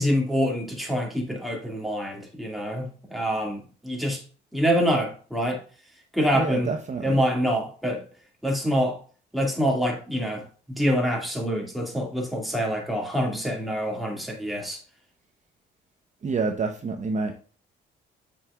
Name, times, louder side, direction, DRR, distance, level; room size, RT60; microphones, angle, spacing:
voice 1, 0.0-4.2 4.5-5.6 6.1-6.7 7.0-8.0 8.4-9.0 9.3-10.4 10.8-14.8, equal, ahead, 2.1 m, -26 dB
voice 2, 6.3-7.2 16.2-17.3, right 4 dB, 35° right, 0.8 m, -28 dB
7.3 x 5.6 x 2.4 m
cardioid pair, 90°, 20 cm